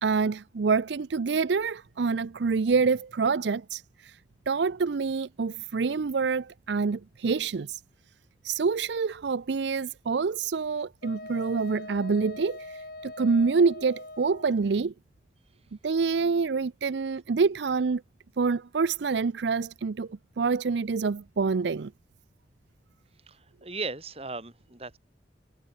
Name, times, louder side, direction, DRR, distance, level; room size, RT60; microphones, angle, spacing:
voice 1, 0.0-4.2 4.5-7.8 8.4-14.9 15.8-18.0 18.4-21.9, right 4 dB, 75° right, 0.5 m, -27 dB
Wind instrument woodwind instrument, 11.0-14.6, left 2 dB, 55° left, 6.1 m, -42 dB
voice 2, 23.3-25.0, right 3 dB, 35° right, 3.0 m, -37 dB
head